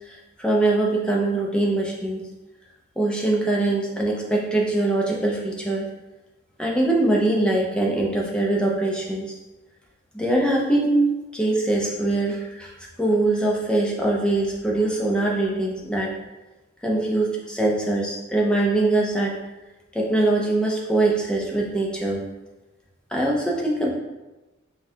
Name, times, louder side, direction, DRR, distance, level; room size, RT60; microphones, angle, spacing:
voice 1, 0.1-2.2 3.0-5.9 6.6-9.3 10.1-12.7 13.0-16.1 16.8-19.3 19.9-22.2 23.1-23.9, right 2 dB, 5° left, -2 dB, 0.5 m, -22 dB
5.2 x 2.4 x 2.7 m, 1.1 s
head